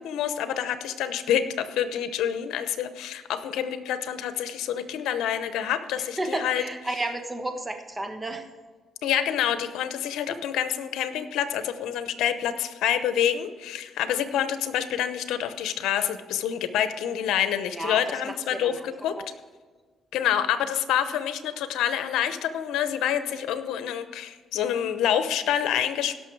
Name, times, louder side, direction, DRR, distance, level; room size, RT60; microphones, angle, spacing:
voice 1, 0.0-6.6 9.0-19.2 20.1-26.2, left 10 dB, 85° left, 11 dB, 0.8 m, -27 dB
voice 2, 6.0-8.4 10.3-10.4 17.7-18.9 19.2-19.3 23.3-23.5, right 2 dB, 15° right, 5 dB, 1.4 m, -33 dB
16.5 x 6.4 x 4.7 m, 1.4 s
cardioid pair, 90°, 0 cm